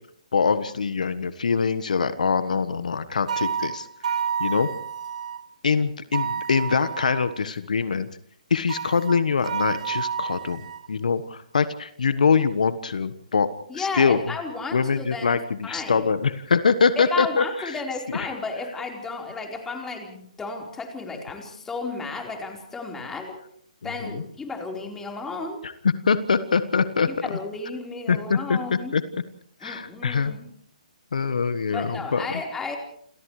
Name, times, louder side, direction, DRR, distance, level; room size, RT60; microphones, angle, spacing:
voice 1, 0.3-3.9 4.4-4.7 5.6-8.1 8.5-13.5 13.7-14.3 14.7-17.8 18.1-18.3 23.8-24.2 25.6-27.3 28.1-28.6 28.9-29.0 29.6-30.3 31.1-32.2, left 5 dB, 70° left, 12 dB, 1.4 m, -23 dB
sound 1, 3.3-5.4 6.1-7.4 8.7-10.9, right 7 dB, 60° right, 1.7 m, -30 dB
voice 2, 13.7-16.0 17.0-23.4 23.8-25.6 27.1-28.9 29.6-30.5 31.7-32.8, left 3 dB, 10° left, 1 dB, 4.3 m, -33 dB
28.5 x 28.5 x 3.3 m, 0.66 s
figure-of-eight pair, 140°, 4 cm